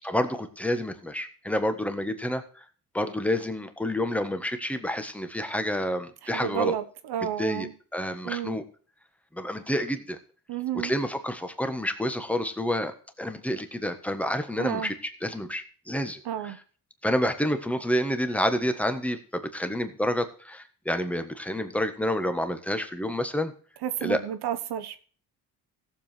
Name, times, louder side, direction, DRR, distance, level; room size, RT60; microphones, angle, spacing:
voice 1, 0.0-2.6 2.9-6.7 7.4-8.6 9.3-10.2 10.7-14.9 15.2-16.5 17.0-23.5 24.0-24.2, left 1 dB, 5° left, 1.4 m, -29 dB
voice 2, 6.2-7.7 8.2-8.6 10.5-10.9 14.6-14.9 16.2-16.6 23.8-25.1, right 10 dB, 75° right, 1.2 m, -31 dB
16.0 x 7.3 x 4.5 m
cardioid pair, 115°, 39 cm